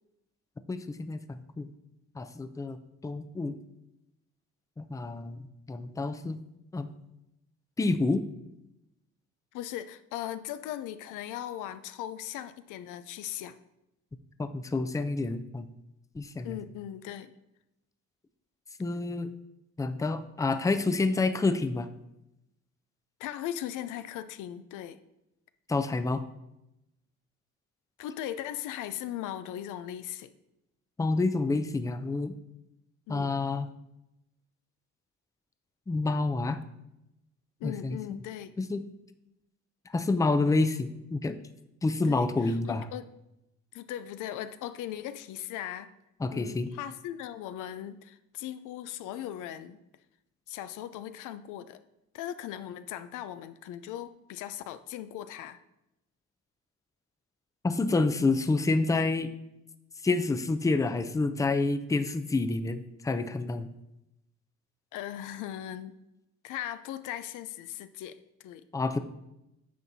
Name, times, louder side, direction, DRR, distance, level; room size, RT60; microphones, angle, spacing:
voice 1, 0.7-1.7 2.2-2.8 3.0-3.5 4.8-6.4 6.7-6.9 7.8-8.2 14.4-15.7 16.1-16.6 18.8-19.3 19.8-21.9 25.7-26.2 31.0-32.3 33.1-33.7 35.9-36.6 37.6-38.0 38.6-38.8 39.9-41.3 41.8-42.9 46.2-46.7 57.6-59.3 60.0-63.7 68.7-69.0, left 3 dB, 10° left, 10 dB, 0.4 m, -28 dB
voice 2, 9.5-13.6 16.4-17.3 23.2-25.0 28.0-30.3 33.1-33.3 37.6-38.5 42.0-43.1 43.7-45.9 46.3-49.8 50.5-51.8 52.1-55.6 64.9-65.9 66.4-68.2 68.4-68.6, left 11 dB, 90° left, 12 dB, 0.5 m, -38 dB
9.4 x 6.0 x 2.7 m, 0.88 s
cardioid pair, 90°, 30 cm